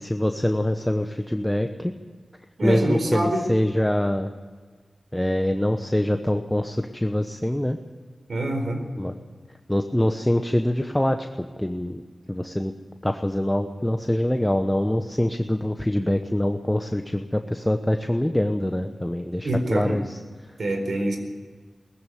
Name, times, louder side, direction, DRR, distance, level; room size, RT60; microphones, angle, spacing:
voice 1, 0.0-1.9 2.6-4.3 5.1-7.8 9.0-9.2 9.7-12.0 12.3-12.7 13.0-20.2, left 1 dB, 10° left, 6 dB, 1.0 m, -24 dB
voice 2, 2.6-3.4 8.3-8.8 19.4-20.0 20.6-21.2, right 1 dB, 70° right, 5 dB, 4.2 m, -25 dB
19.0 x 15.0 x 9.4 m, 1.5 s
wide cardioid pair, 80°, 0 cm